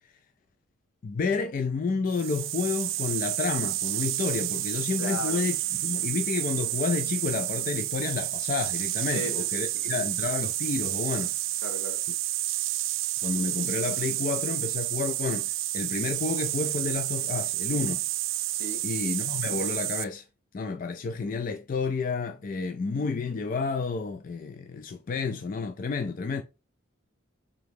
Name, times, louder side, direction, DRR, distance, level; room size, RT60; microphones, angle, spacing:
voice 1, 1.0-11.3 13.2-18.0 18.8-20.2 20.5-26.4, left 4 dB, 40° left, 0.3 m, -30 dB
sound 1, 2.1-20.0, right 16 dB, 70° right, 0.3 m, -30 dB
voice 2, 5.0-5.4 9.1-10.0 11.6-12.0 18.5-18.8, left 1 dB, 60° left, 1.0 m, -36 dB
3.6 x 2.9 x 3.5 m
head